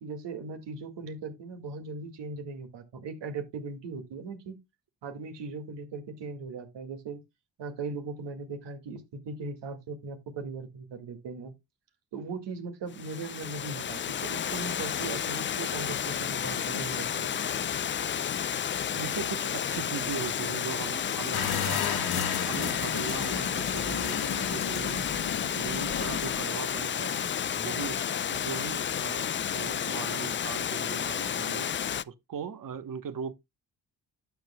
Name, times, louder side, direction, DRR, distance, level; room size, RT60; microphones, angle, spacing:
voice 1, 0.0-4.6 5.0-7.2 7.6-11.5 12.1-17.3, right 4 dB, 75° right, 2.1 m, -39 dB
Water, 12.9-32.0, left 8 dB, 30° left, 0.4 m, -31 dB
voice 2, 18.9-21.8 22.5-25.1 25.5-27.2 27.5-28.0 28.3-31.7 32.1-33.3, right 7 dB, 50° right, 1.1 m, -39 dB
sound 1, 21.3-26.4, left 7 dB, 60° left, 1.8 m, -33 dB
11.5 x 7.5 x 2.2 m
supercardioid pair, 55°, 43 cm